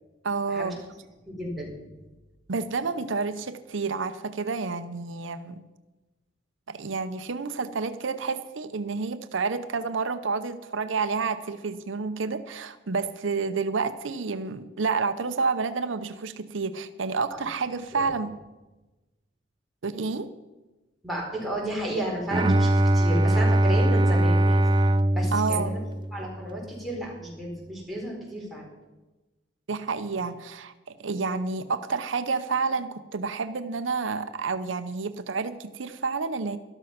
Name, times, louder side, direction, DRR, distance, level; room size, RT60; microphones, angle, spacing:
voice 1, 0.2-0.7 2.5-5.6 6.7-18.3 19.8-20.3 25.3-25.7 29.7-30.7 31.0-36.6, right 4 dB, 80° right, 11 dB, 0.7 m, -29 dB
voice 2, 1.3-1.8 17.3-17.4 17.9-18.0 21.0-24.6 25.1-25.8 26.1-28.7, right 1 dB, ahead, -4 dB, 4.3 m, -32 dB
Bowed string instrument, 22.3-26.5, right 1 dB, 25° right, 0.5 m, -22 dB
13.0 x 12.5 x 5.8 m, 1.1 s
head